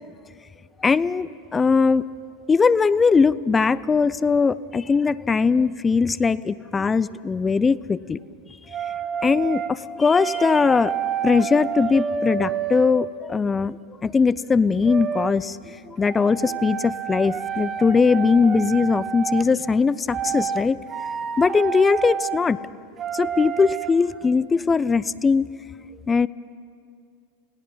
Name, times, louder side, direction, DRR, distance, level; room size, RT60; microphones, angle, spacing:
voice 1, 0.8-2.1 2.5-8.2 9.2-10.9 11.2-13.8 14.0-20.8 21.4-22.6 23.1-25.5 26.1-26.3, left 5 dB, 20° left, 19 dB, 0.5 m, -20 dB
sound 1, 8.7-9.7 10.1-13.2 14.8-15.3 16.0-19.5 20.1-20.6 20.9-22.4 23.0-23.9, right 8 dB, 30° right, 1.1 m, -29 dB
28.0 x 18.0 x 5.6 m, 2.4 s
hypercardioid pair, 95°, 0 cm